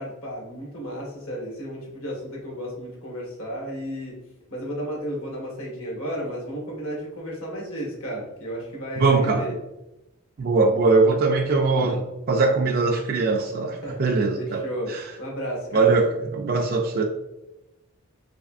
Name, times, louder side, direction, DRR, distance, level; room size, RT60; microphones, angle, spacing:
voice 1, 0.0-4.2 4.5-9.5 13.8-14.0 14.4-16.0, equal, 85° left, -3 dB, 1.4 m, -33 dB
voice 2, 9.0-9.4 10.4-14.6 14.9-15.0 15.7-17.0, right 3 dB, 45° right, 1 dB, 0.4 m, -21 dB
3.4 x 3.3 x 2.4 m, 0.95 s
head